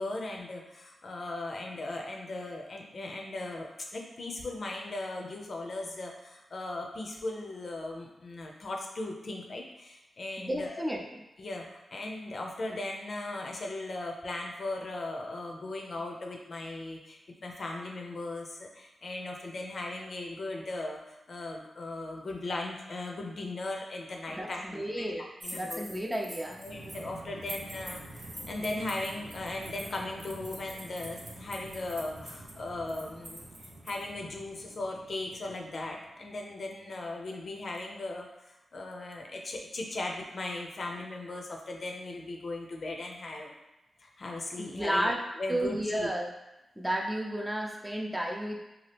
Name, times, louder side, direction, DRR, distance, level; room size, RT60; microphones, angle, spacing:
voice 1, 0.0-10.8 11.4-25.1 25.4-25.9 26.6-33.5 33.8-38.3 38.7-43.5 44.0-45.1 45.4-46.1, left 2 dB, 60° left, 1 dB, 0.5 m, -38 dB
voice 2, 10.4-11.0 24.3-25.2 25.5-26.6 44.6-45.2 45.5-46.3 46.8-48.6, right 1 dB, 10° right, -1 dB, 0.5 m, -32 dB
sound 1, 25.4-27.0 27.4-34.0, right 1 dB, 40° right, 0.8 m, -45 dB
sound 2, 26.7-36.7, right 2 dB, 85° right, 0.6 m, -49 dB
2.8 x 2.4 x 3.3 m, 0.97 s
cardioid pair, 65°, 0 cm